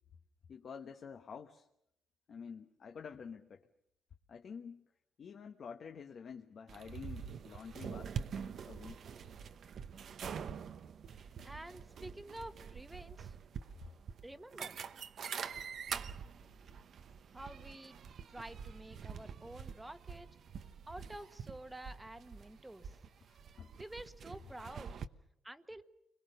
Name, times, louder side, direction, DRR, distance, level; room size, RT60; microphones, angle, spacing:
voice 1, 0.5-1.6 2.3-3.7 4.3-4.9 5.2-9.0 23.3-23.7, left 6 dB, 55° left, 4 dB, 1.2 m, -49 dB
sound 1, 6.7-25.1, right 7 dB, 60° right, 1.0 m, -46 dB
voice 2, 11.2-13.3 14.2-14.8 17.3-17.9 18.3-20.4 20.9-22.9 23.8-24.9 25.4-25.8, right 1 dB, 10° right, 10 dB, 1.3 m, -49 dB
30.0 x 22.5 x 6.8 m, 0.78 s
cardioid pair, 90°, 0 cm